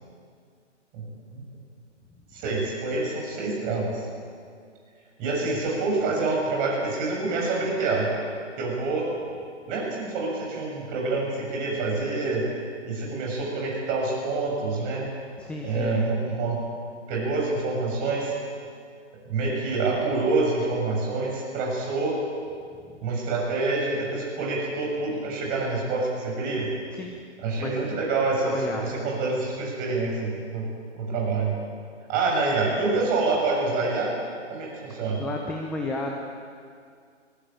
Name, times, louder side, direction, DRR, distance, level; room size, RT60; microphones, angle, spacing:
voice 1, 0.9-1.4 2.3-4.0 5.2-8.1 8.6-9.1 9.7-12.5 12.8-15.1 15.6-16.6 17.1-18.3 19.3-22.2 23.0-26.7 27.4-30.7 31.0-31.6 32.1-34.2 34.5-35.2, right 3 dB, 20° right, -2 dB, 7.1 m, -27 dB
voice 2, 15.4-15.9 26.9-27.1 27.6-27.7 28.5-28.8 35.2-36.2, left 2 dB, 5° left, 1 dB, 0.8 m, -32 dB
21.5 x 21.5 x 9.0 m, 2.2 s
figure-of-eight pair, 145°, 36 cm